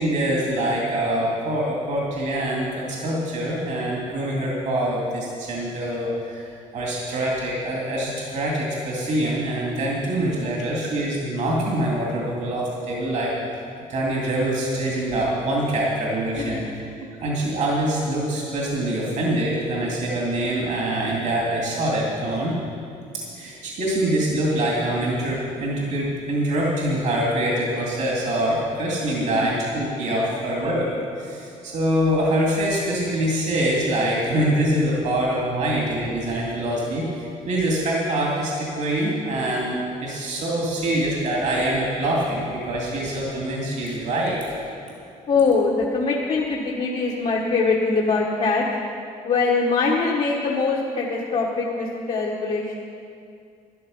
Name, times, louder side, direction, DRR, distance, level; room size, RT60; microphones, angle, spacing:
voice 1, 0.0-13.3 13.9-16.6 17.2-22.6 23.3-30.9 31.2-44.4, right 1 dB, 60° right, -3 dB, 2.6 m, -24 dB
voice 2, 16.4-16.7 29.3-29.4 30.2-30.4 45.3-48.6 49.2-52.8, left 4 dB, 50° left, -3 dB, 1.4 m, -23 dB
13.0 x 11.5 x 5.6 m, 2.4 s
cardioid pair, 115°, 14 cm